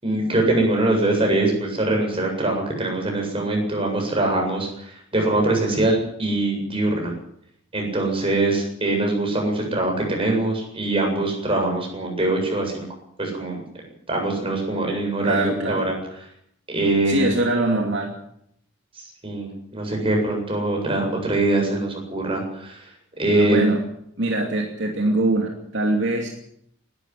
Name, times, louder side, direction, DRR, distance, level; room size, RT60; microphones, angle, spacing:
voice 1, 0.0-7.1 7.7-12.9 13.2-13.6 14.1-16.0 16.7-17.3 19.2-22.8 23.2-23.6, right 2 dB, 25° right, 1 dB, 7.9 m, -23 dB
voice 2, 15.2-15.9 17.1-18.1 23.3-23.8 24.2-26.3, right 2 dB, 60° right, 2 dB, 2.8 m, -23 dB
20.0 x 13.0 x 10.0 m, 0.70 s
head